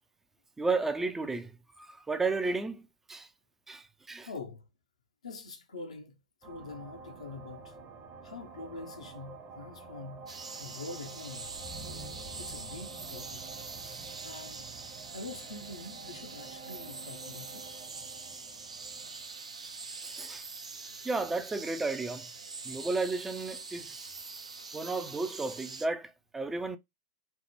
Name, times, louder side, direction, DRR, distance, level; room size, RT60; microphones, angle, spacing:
voice 1, 0.6-2.8 3.1-3.3 3.7-4.3 20.0-20.4 21.0-22.3 22.7-24.1 24.7-26.8, right 3 dB, 10° right, 0.3 m, -33 dB
voice 2, 4.3-4.6 5.2-6.1 6.4-7.7 8.2-10.3 10.6-11.5 12.4-13.4 14.2-14.6 15.1-17.7, left 3 dB, 75° left, 0.6 m, -44 dB
sound 1, 6.4-20.6, right 3 dB, 25° right, 0.7 m, -49 dB
sound 2, 10.3-25.9, right 4 dB, 80° right, 0.5 m, -44 dB
3.2 x 2.0 x 2.9 m
figure-of-eight pair, 100°, 3 cm